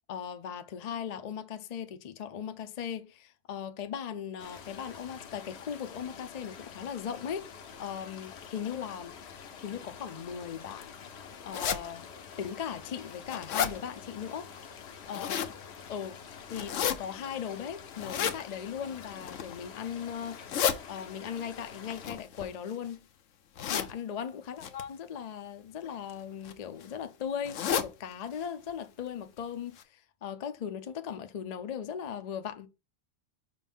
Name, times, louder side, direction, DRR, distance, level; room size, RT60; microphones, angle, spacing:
voice 1, 0.1-9.2 9.6-10.9 11.4-12.1 12.4-14.5 15.1-15.5 15.9-16.2 16.5-20.4 20.9-23.0 23.7-32.7, left 8 dB, 50° left, 0.5 m, -38 dB
sound 1, 4.4-22.1, left 7 dB, 65° left, 0.9 m, -47 dB
sound 2, 11.5-11.8 12.4-12.5 13.0-13.7 14.9-15.5 16.5-16.9 17.9-18.4 19.1-19.5 20.2-20.8 21.9-22.9 23.6-23.9 24.6-24.8 25.8-26.1 26.4-26.5 26.8-26.9 27.4-27.9 28.3-28.4 28.7-28.8 29.4-29.5 29.8-29.9, left 8 dB, 85° left, 1.1 m, -31 dB
5.3 x 3.9 x 5.4 m
omnidirectional pair, 1.2 m